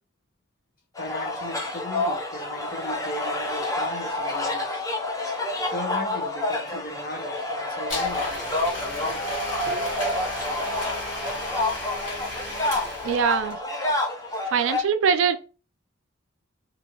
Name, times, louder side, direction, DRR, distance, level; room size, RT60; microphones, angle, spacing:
voice 1, 1.0-4.8 5.7-9.3 9.6-9.8, left 1 dB, 45° left, 0.8 m, -37 dB
sound 1, 1.0-14.8, left 2 dB, 15° left, 0.5 m, -28 dB
Domestic sounds home sounds, 7.9-13.5, left 1 dB, 65° left, 1.2 m, -35 dB
voice 2, 13.0-13.6 14.5-15.4, right 6 dB, 75° right, 0.4 m, -22 dB
3.0 x 2.5 x 2.8 m
head